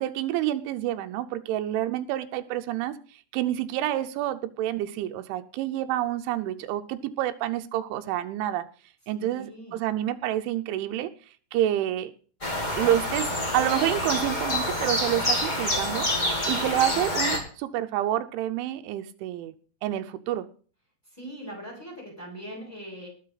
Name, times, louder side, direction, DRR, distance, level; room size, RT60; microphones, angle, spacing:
voice 1, 0.0-3.0 3.3-8.7 9.1-11.1 11.5-12.1 12.8-16.1 16.5-19.5 19.8-20.5, right 13 dB, 90° right, 9 dB, 3.2 m, -28 dB
voice 2, 9.2-9.8 21.1-23.1, equal, 5° left, -1 dB, 5.9 m, -41 dB
sound 1, 12.4-17.4, left 1 dB, 25° left, 1.0 m, -27 dB
20.0 x 7.8 x 4.0 m, 0.41 s
omnidirectional pair, 5.3 m